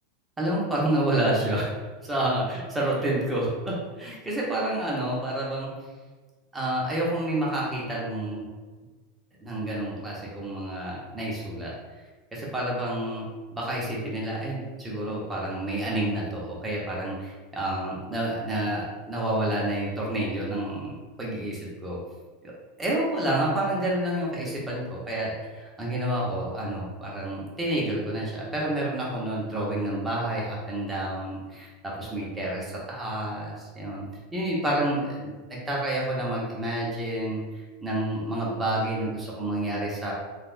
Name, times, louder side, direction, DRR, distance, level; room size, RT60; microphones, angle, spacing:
voice 1, 0.4-1.7 2.0-5.7 6.5-8.4 9.4-11.7 12.3-13.3 13.5-20.9 21.2-22.0 22.4-22.5 22.8-34.0 34.3-40.1, right 1 dB, 15° right, -5 dB, 0.9 m, -29 dB
3.2 x 2.4 x 2.5 m, 1.3 s
hypercardioid pair, 110°, 0 cm